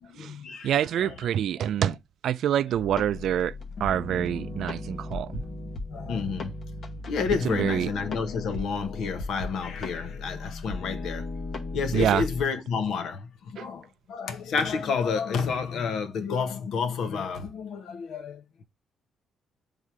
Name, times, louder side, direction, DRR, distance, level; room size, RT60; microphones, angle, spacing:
voice 1, 0.0-1.3 1.8-2.0 5.9-6.5 7.1-11.3 11.7-18.6, left 5 dB, 75° left, 1.0 m, -30 dB
voice 2, 0.6-2.0 2.2-3.5 3.8-5.4 7.6-7.9 11.9-12.2 13.6-13.7, right 10 dB, 70° right, 0.3 m, -26 dB
sound 1, 2.7-12.4, left 2 dB, 55° left, 1.2 m, -36 dB
7.3 x 3.6 x 4.8 m
cardioid pair, 90°, 0 cm